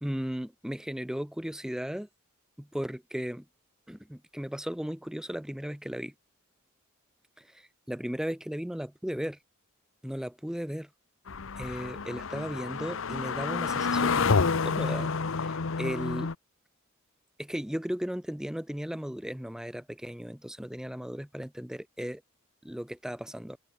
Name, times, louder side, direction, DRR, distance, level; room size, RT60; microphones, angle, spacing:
voice 1, 0.0-2.1 2.6-3.4 3.9-6.1 7.9-9.4 10.0-10.9 11.6-16.3 17.4-22.2 22.6-23.6, equal, 5° right, 0.5 m, -36 dB
sound 1, 11.3-16.3, left 4 dB, 65° left, 0.8 m, -29 dB
open air
head